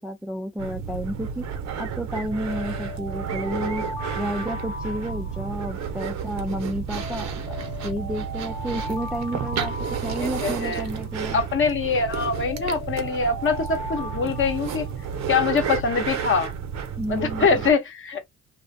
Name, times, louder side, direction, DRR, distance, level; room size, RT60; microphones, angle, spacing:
voice 1, 0.0-1.4 1.8-3.8 4.2-9.7 10.0-11.4 17.0-17.5, equal, 5° right, 0.3 m, -31 dB
sound 1, 0.6-17.7, right 7 dB, 65° right, 0.6 m, -31 dB
Alarm, 2.3-6.4 7.0-11.4 12.0-15.8, left 1 dB, 75° left, 1.0 m, -38 dB
voice 2, 10.2-10.8 11.3-14.9 15.3-16.5 17.1-18.3, left 5 dB, 45° left, 0.8 m, -24 dB
2.5 x 2.1 x 2.6 m
cardioid pair, 90°, 30 cm